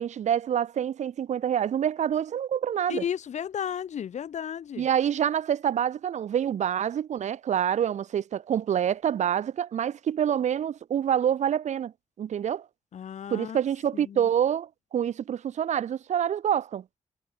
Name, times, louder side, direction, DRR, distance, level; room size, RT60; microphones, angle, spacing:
voice 1, 0.0-3.0 4.8-11.9 12.2-12.6 13.3-16.8, right 9 dB, 85° right, 1.5 m, -27 dB
voice 2, 2.9-4.9 12.9-13.6 13.9-14.3, left 8 dB, 85° left, 5.8 m, -33 dB
wide cardioid pair, 150°, 12 cm